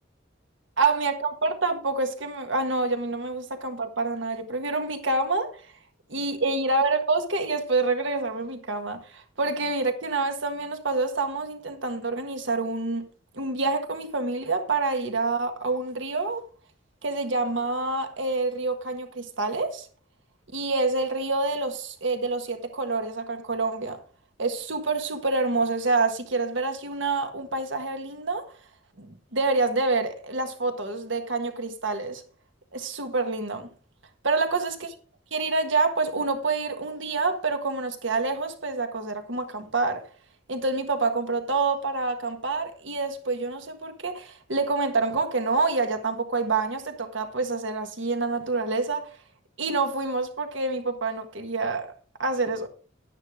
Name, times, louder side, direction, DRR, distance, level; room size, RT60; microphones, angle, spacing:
voice 1, 0.8-5.6 6.1-13.1 13.3-16.4 17.0-19.9 20.5-24.0 24.4-28.4 29.0-32.2 32.7-33.7 34.2-34.9 35.3-40.0 40.5-49.1 49.6-51.9 52.2-52.7, right 3 dB, 65° right, 1.6 m, -27 dB
11.5 x 10.5 x 3.7 m
head